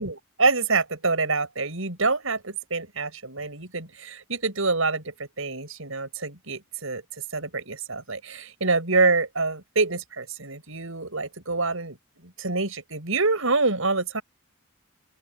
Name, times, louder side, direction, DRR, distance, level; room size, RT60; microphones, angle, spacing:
voice 1, 0.0-7.0 7.3-12.0 12.2-14.2, right 3 dB, 75° right, 5.9 m, -26 dB
open air
head